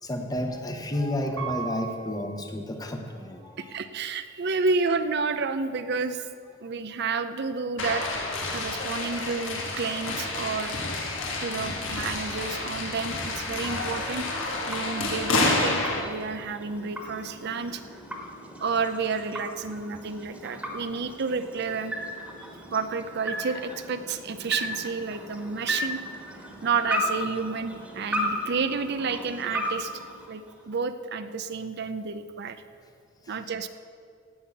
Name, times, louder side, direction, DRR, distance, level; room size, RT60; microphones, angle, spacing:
voice 1, 0.0-3.8 33.2-33.3, left 1 dB, 20° left, 4 dB, 1.1 m, -31 dB
Piano, 1.4-4.1 4.7-5.4, right 6 dB, 80° right, 3.7 m, -40 dB
voice 2, 3.6-6.2 6.6-8.1 8.5-10.8 11.4-14.3 14.7-17.8 18.6-21.9 22.4-26.0 26.6-29.9 30.3-32.6 33.3-33.7, right 4 dB, 55° right, 10 dB, 0.6 m, -30 dB
sound 1, 7.8-16.0, left 2 dB, 70° left, 1.7 m, -29 dB
sound 2, 13.1-30.8, equal, 5° right, 1.6 m, -36 dB
16.5 x 5.7 x 8.3 m, 2.2 s
head